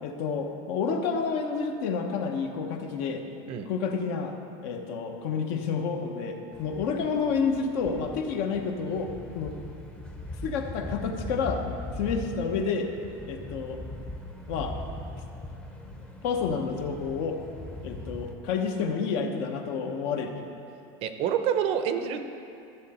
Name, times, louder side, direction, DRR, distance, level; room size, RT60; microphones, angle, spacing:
voice 1, 0.0-3.3 3.7-4.3 4.6-9.5 10.4-11.6 12.0-12.9 13.3-13.8 14.5-14.7 16.2-17.4 17.8-20.3, left 5 dB, 60° left, 4 dB, 1.0 m, -29 dB
sound 1, 6.5-18.3, left 1 dB, 5° left, 0.7 m, -40 dB
voice 2, 21.0-22.2, right 8 dB, 45° right, 8 dB, 0.6 m, -27 dB
13.0 x 6.6 x 4.2 m, 2.6 s
supercardioid pair, 155°, 14 cm